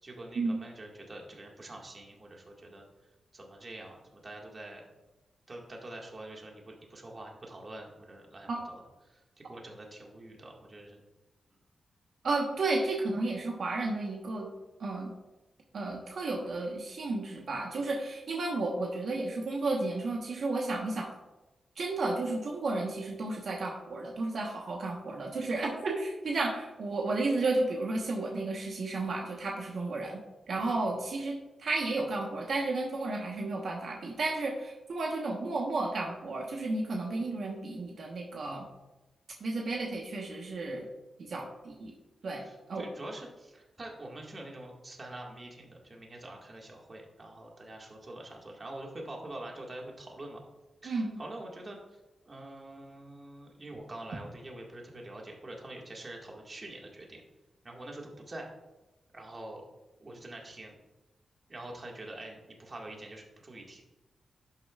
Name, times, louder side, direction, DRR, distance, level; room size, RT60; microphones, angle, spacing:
voice 1, 0.0-2.9 3.3-4.8 5.5-9.2 9.5-11.0 30.7-30.9 42.4-50.4 50.8-52.0 52.3-57.2 57.6-58.5 59.1-59.6 60.0-60.7 61.5-63.8, right 1 dB, 40° right, 0 dB, 1.9 m, -45 dB
voice 2, 12.2-14.5 14.8-15.1 15.7-21.1 21.8-38.6 39.4-40.8 41.2-41.9 42.2-42.4 42.7-42.9 50.8-51.2, right 2 dB, 70° right, -1 dB, 1.2 m, -32 dB
11.0 x 6.6 x 2.5 m, 1.0 s
cardioid pair, 70°, 0 cm